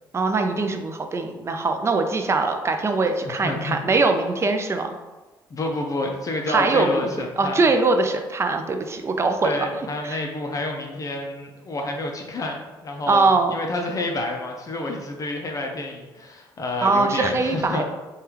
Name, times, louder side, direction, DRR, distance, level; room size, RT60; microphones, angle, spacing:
voice 1, 0.1-4.9 6.5-7.1 7.4-9.7 10.0-10.2 13.1-13.5 16.8-17.8, right 3 dB, 30° right, 5 dB, 0.4 m, -22 dB
voice 2, 3.2-3.8 5.5-7.6 9.4-17.8, left 2 dB, 40° left, 2 dB, 0.4 m, -29 dB
3.3 x 2.3 x 2.9 m, 1.2 s
cardioid pair, 80°, 9 cm